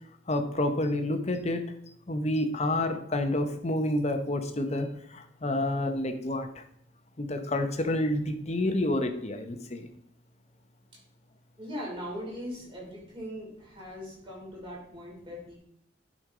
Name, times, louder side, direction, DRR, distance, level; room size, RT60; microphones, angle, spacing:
voice 1, 0.3-1.6 2.1-4.9 5.1-6.5 7.2-9.9, left 1 dB, 35° left, 6 dB, 0.8 m, -29 dB
voice 2, 11.6-15.6, equal, 25° right, -4 dB, 2.9 m, -40 dB
11.5 x 5.3 x 3.6 m, 0.69 s
head